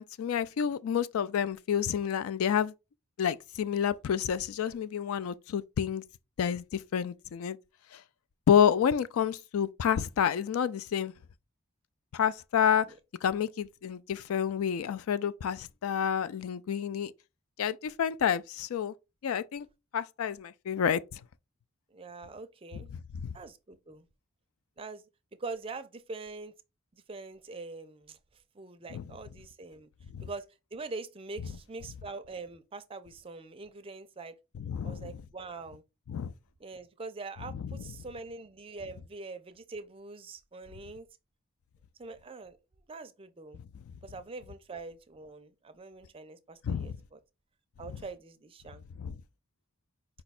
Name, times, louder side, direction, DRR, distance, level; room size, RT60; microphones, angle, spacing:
voice 1, 0.0-2.7 3.2-6.0 6.4-7.6 7.9-8.0 8.5-11.1 12.1-12.9 13.2-17.1 17.6-18.9 19.2-19.7 19.9-21.2 23.2-23.3 28.9-29.0 30.1-30.3 34.6-35.1 36.1-36.3 37.5-37.7 46.6-47.0 49.0-49.2, left 8 dB, 75° left, 0.3 m, -29 dB
voice 2, 21.9-22.9 23.3-24.1 24.8-25.0 25.4-26.5 26.9-28.2 28.5-29.9 30.2-30.5 30.7-34.3 34.8-35.8 36.6-41.1 42.0-42.6 42.9-43.6 44.0-47.2 47.8-48.8, right 3 dB, 25° right, 0.4 m, -43 dB
5.0 x 2.3 x 4.1 m
head